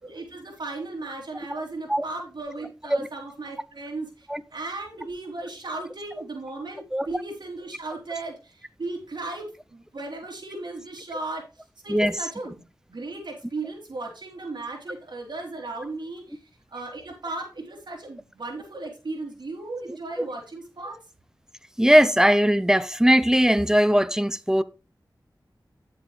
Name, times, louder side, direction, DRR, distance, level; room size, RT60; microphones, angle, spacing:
voice 1, 0.0-12.6 12.9-16.4 16.7-21.0, right 2 dB, 75° right, 3.7 m, -36 dB
voice 2, 21.8-24.6, equal, 5° right, 0.6 m, -19 dB
10.5 x 7.8 x 3.3 m
wide cardioid pair, 65°, 8 cm